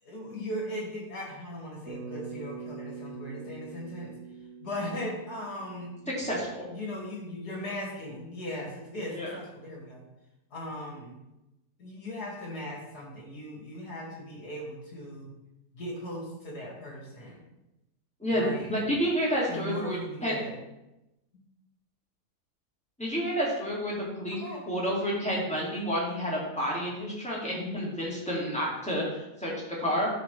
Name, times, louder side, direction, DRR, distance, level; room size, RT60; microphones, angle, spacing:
voice 1, 0.0-4.1 4.6-6.0 6.7-10.0 10.5-11.2 11.8-15.3 15.7-17.4 18.3-18.8 19.5-20.6 24.4-24.6, left 1 dB, 75° left, -3 dB, 2.9 m, -38 dB
Bass guitar, 1.9-6.2, right 5 dB, 70° right, 2.4 m, -44 dB
voice 2, 6.2-6.7 9.1-9.3 18.2-20.3 23.0-24.4 24.7-29.5 29.8-30.1, equal, 5° left, -5 dB, 2.4 m, -30 dB
12.5 x 5.2 x 3.4 m, 0.93 s
omnidirectional pair, 1.7 m